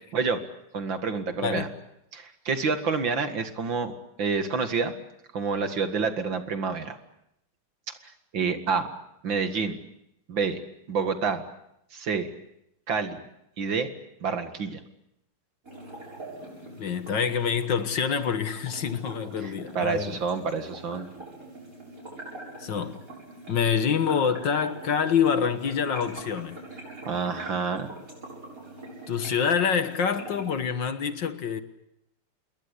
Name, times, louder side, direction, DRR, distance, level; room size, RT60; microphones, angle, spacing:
voice 1, 0.7-1.7 2.1-3.9 4.2-4.9 5.3-7.0 8.0-8.9 9.2-9.8 10.3-10.6 10.9-11.4 11.9-12.3 12.9-13.2 13.6-13.9 14.2-14.8 19.4-21.1 27.1-27.9, right 5 dB, 60° right, 2.6 m, -28 dB
sound 1, 15.6-30.6, right 1 dB, 40° right, 8.5 m, -44 dB
voice 2, 16.8-20.2 22.6-23.0 23.5-26.6 29.1-31.6, left 7 dB, 60° left, 2.0 m, -26 dB
28.0 x 21.5 x 8.4 m
omnidirectional pair, 2.3 m